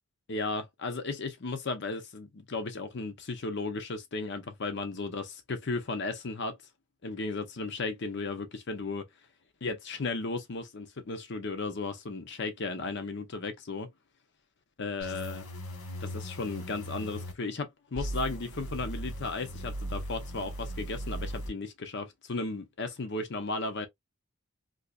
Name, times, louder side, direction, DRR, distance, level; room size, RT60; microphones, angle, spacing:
voice 1, 0.3-6.6 7.0-9.1 9.6-13.9 14.8-15.5 16.0-23.9, left 3 dB, 55° left, 0.7 m, -35 dB
sound 1, 15.0-17.3 17.9-21.5, equal, 85° left, 1.1 m, -38 dB
3.9 x 2.8 x 2.3 m
head